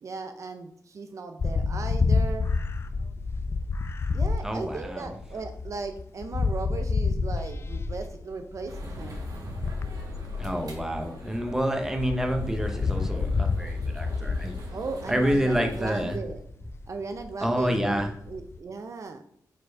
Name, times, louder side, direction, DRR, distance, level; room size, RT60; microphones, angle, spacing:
voice 1, 0.0-2.5 4.1-9.2 14.7-16.4 16.9-19.3, right 4 dB, 50° right, 7 dB, 0.5 m, -37 dB
sound 1, 1.4-11.4 11.8-18.6, left 4 dB, 40° left, 0.4 m, -29 dB
voice 2, 4.4-5.1 10.4-14.6 15.1-16.2 17.4-18.1, equal, 5° right, 3 dB, 0.8 m, -28 dB
sound 2, 8.7-16.2, left 1 dB, 70° right, 1.5 m, -41 dB
5.1 x 4.4 x 4.5 m, 0.67 s
wide cardioid pair, 125°, 7 cm